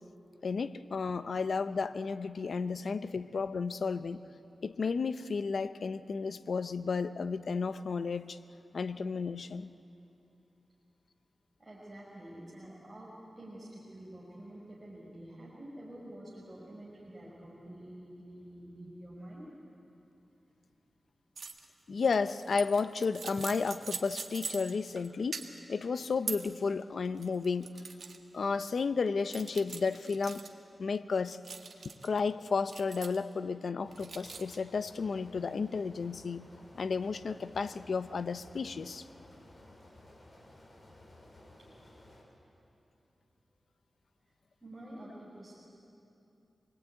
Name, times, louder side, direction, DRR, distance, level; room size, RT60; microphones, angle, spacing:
voice 1, 0.4-4.2 4.6-8.4 8.7-9.7 21.9-25.4 25.7-27.7 28.3-30.4 30.8-31.4 31.8-36.5 36.7-39.0, left 5 dB, 70° left, 12 dB, 0.8 m, -32 dB
voice 2, 11.6-19.5 28.2-28.4 44.6-45.5, right 1 dB, 20° right, -6 dB, 5.5 m, -48 dB
sound 1, 21.4-21.6 22.0-25.1 25.3-25.7 26.3-26.5 27.0-28.2 28.6-28.7 29.3-30.5 31.4-32.2 32.7-33.3 33.9-34.6, right 5 dB, 75° right, 1.7 m, -42 dB
sound 2, 33.8-42.2, left 1 dB, 35° left, 5.4 m, -56 dB
27.0 x 21.0 x 9.1 m, 2.8 s
wide cardioid pair, 85°, 0 cm